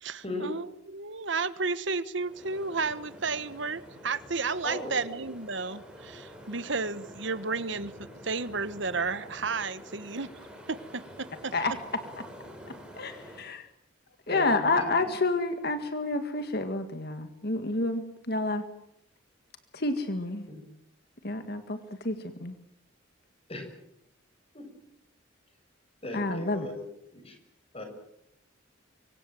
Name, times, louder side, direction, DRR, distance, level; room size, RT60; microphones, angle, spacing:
voice 1, 0.0-7.9 8.2-10.3 10.7-11.8, right 4 dB, 65° right, 14 dB, 1.3 m, -32 dB
sound 1, 2.2-13.4, equal, 5° right, 7.0 m, -48 dB
voice 2, 4.6-5.0 14.3-15.2 20.5-20.6 23.5-23.6 24.5-24.6 26.0-27.3 27.7-27.8, left 2 dB, 30° left, 5 dB, 6.9 m, -38 dB
voice 3, 13.0-13.7 14.3-18.6 19.7-20.5 21.2-21.8 22.0-22.2 22.4-22.5 26.1-26.7, left 2 dB, 50° left, 8 dB, 1.9 m, -29 dB
26.0 x 24.5 x 7.7 m, 0.78 s
head